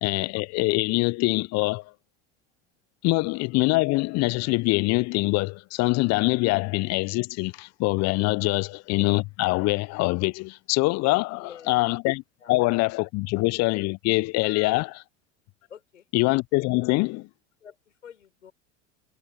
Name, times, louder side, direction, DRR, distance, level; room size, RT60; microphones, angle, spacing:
voice 1, 0.0-1.8 3.0-12.2 12.5-14.9 16.1-17.3, left 23 dB, 45° left, 0.7 m, -24 dB
voice 2, 11.3-11.9 12.4-12.5 14.4-14.8 15.7-16.1 17.6-18.5, left 8 dB, 85° left, 5.8 m, -47 dB
hypercardioid pair, 75°, 36 cm